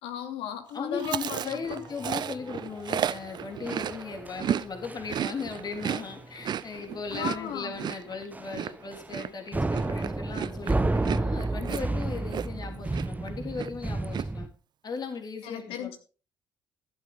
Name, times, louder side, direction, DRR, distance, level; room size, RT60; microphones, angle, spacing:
voice 1, 0.0-1.8 7.1-7.7 15.4-16.0, left 9 dB, 65° left, 6 dB, 2.7 m, -36 dB
voice 2, 0.7-14.5 14.8-15.9, left 4 dB, 40° left, 4 dB, 3.5 m, -37 dB
Chewing mastication, 1.0-4.7 4.9-12.7 12.9-13.3 13.5-14.2, right 9 dB, 45° right, 0.5 m, -33 dB
sound 1, 1.5-8.0, left 1 dB, 15° left, 3.6 m, -51 dB
sound 2, 3.7-4.5 4.8-5.2 5.4-5.7 6.0-6.2 6.6-6.7 7.1-7.5 7.7-7.9 8.3-9.2 9.5-14.5, right 2 dB, 15° right, 1.0 m, -31 dB
14.5 x 12.0 x 3.8 m, 0.35 s
hypercardioid pair, 50°, 10 cm